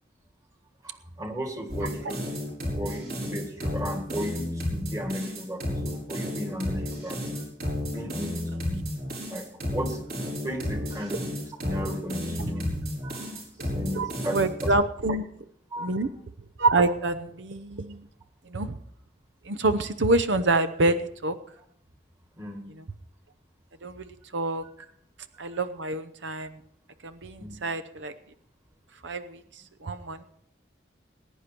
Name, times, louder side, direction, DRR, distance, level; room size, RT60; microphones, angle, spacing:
voice 1, 0.8-2.2 2.8-7.4 7.9-8.8 9.3-10.0 10.4-11.3 11.6-12.8 13.0-13.3 13.6-14.7 15.7-16.1 22.4-22.7 27.4-27.6, equal, 20° right, 4 dB, 2.0 m, -35 dB
sound 1, 1.7-14.7, left 1 dB, 55° right, 4.7 m, -32 dB
voice 2, 13.9-15.2 15.8-16.1 16.6-18.0 18.5-18.8 19.4-21.4 22.8-22.9 23.8-24.1 24.3-24.6 25.4-26.5 27.0-28.1 29.0-29.4 29.8-30.3, right 2 dB, 80° right, 11 dB, 0.8 m, -26 dB
20.0 x 10.0 x 4.5 m, 0.68 s
head